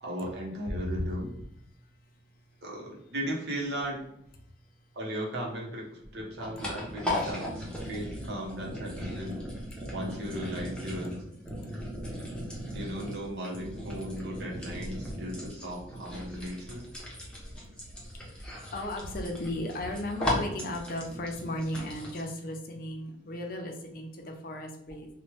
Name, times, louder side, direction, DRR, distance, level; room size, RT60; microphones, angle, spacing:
voice 1, 0.0-1.4 2.6-4.0 4.9-5.9 6.1-9.4 9.9-11.2 12.7-16.9, equal, 65° right, -2 dB, 0.9 m, -36 dB
voice 2, 0.7-1.1 16.7-16.8 17.5-17.6 18.1-25.1, left 1 dB, 55° left, 3 dB, 0.5 m, -36 dB
sound 1, 5.9-22.2, left 1 dB, 5° left, 0.7 m, -37 dB
3.0 x 2.2 x 3.1 m, 0.76 s
head